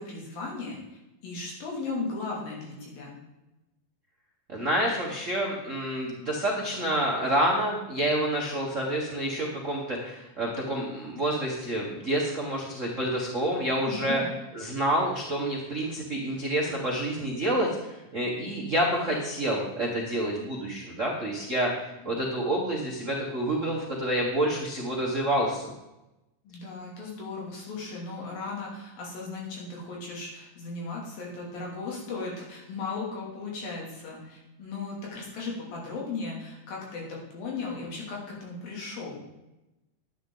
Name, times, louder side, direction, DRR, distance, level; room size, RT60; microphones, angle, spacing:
voice 1, 0.0-3.2 13.9-14.3 26.4-39.2, left 3 dB, 85° left, -3 dB, 4.5 m, -36 dB
voice 2, 4.5-14.2 14.5-25.7, right 1 dB, 60° right, -2 dB, 0.7 m, -28 dB
11.0 x 9.5 x 3.9 m, 0.95 s
omnidirectional pair, 4.0 m